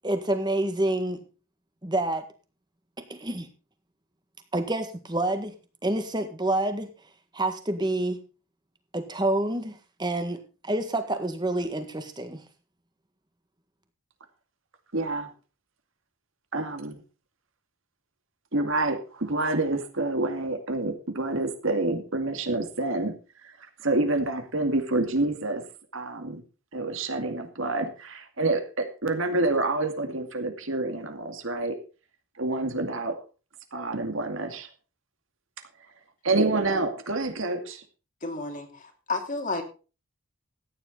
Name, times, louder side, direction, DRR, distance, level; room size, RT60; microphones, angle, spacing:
voice 1, 0.0-1.2 1.8-2.2 3.1-3.5 4.5-5.5 5.8-6.9 7.3-8.2 8.9-12.4, right 1 dB, 20° right, 7 dB, 1.7 m, -28 dB
voice 2, 14.9-15.3 16.5-17.0 18.5-23.1 23.4-23.5 23.8-25.6 25.9-26.4 26.7-31.8 32.4-33.2 33.7-34.7 36.2-37.8, right 2 dB, 70° right, 6 dB, 2.3 m, -27 dB
voice 3, 38.2-39.6, left 3 dB, 35° left, 5 dB, 2.5 m, -31 dB
14.5 x 10.0 x 4.0 m, 0.34 s
head